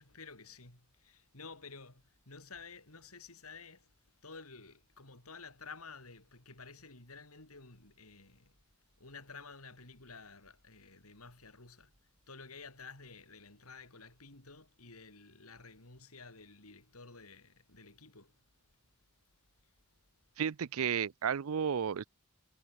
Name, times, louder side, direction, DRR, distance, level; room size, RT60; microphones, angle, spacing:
voice 1, 0.0-3.9 4.2-8.6 9.0-11.9 12.3-18.4, left 4 dB, 90° left, 5.4 m, -52 dB
voice 2, 20.4-22.0, right 7 dB, 80° right, 0.5 m, -32 dB
head